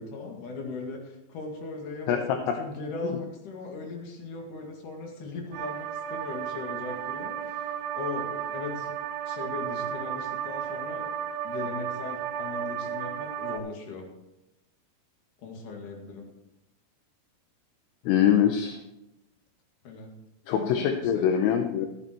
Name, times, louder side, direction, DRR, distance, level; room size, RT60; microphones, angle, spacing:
voice 1, 0.0-8.9 9.2-11.1 11.4-14.1 15.4-16.3 19.8-20.1 20.5-21.3 21.8-21.9, left 3 dB, 55° left, 1 dB, 3.2 m, -38 dB
voice 2, 2.1-2.6 3.0-3.2 18.1-18.8 20.5-21.9, left 9 dB, 80° left, 5 dB, 2.7 m, -24 dB
sound 1, 5.5-13.6, right 9 dB, 85° right, 2.7 m, -33 dB
13.5 x 13.5 x 3.1 m, 0.90 s
omnidirectional pair, 4.9 m